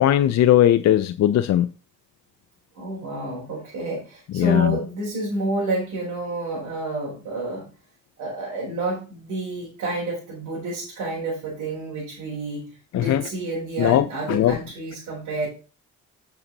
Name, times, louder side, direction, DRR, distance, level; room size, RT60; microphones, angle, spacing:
voice 1, 0.0-1.7 4.3-4.8 12.9-13.2 13.8-14.6, left 12 dB, 60° left, 0.6 m, -19 dB
voice 2, 2.8-7.7 8.2-15.5, right 2 dB, 90° right, 4.6 m, -29 dB
8.7 x 7.0 x 4.1 m
cardioid pair, 90°, 30 cm